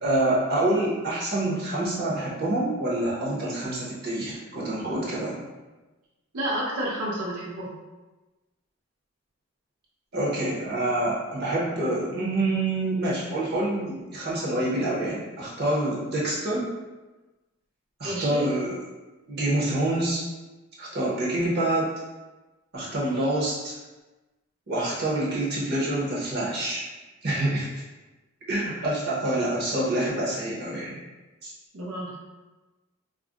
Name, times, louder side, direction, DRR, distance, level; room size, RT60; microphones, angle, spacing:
voice 1, 0.0-5.4 10.1-16.7 18.0-18.7 19.3-20.2 20.8-21.9 22.7-23.8 24.7-26.8 27.2-27.7 28.5-31.0 31.4-31.5, right 1 dB, 45° right, -6 dB, 0.7 m, -26 dB
voice 2, 6.3-7.7 18.0-18.5 31.7-32.2, right 1 dB, 85° right, -5 dB, 0.6 m, -30 dB
2.4 x 2.0 x 3.6 m, 1.1 s
head